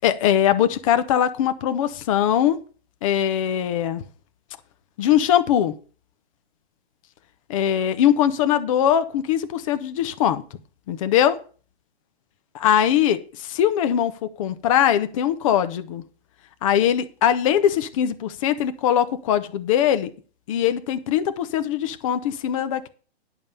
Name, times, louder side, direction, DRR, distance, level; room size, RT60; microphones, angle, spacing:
voice 1, 0.0-2.6 3.0-4.0 5.0-5.8 7.5-10.4 10.9-11.4 12.6-16.0 16.6-20.1 20.5-22.9, left 10 dB, 30° left, 11 dB, 0.7 m, -21 dB
10.5 x 5.5 x 6.7 m, 0.39 s
hypercardioid pair, 160°, 32 cm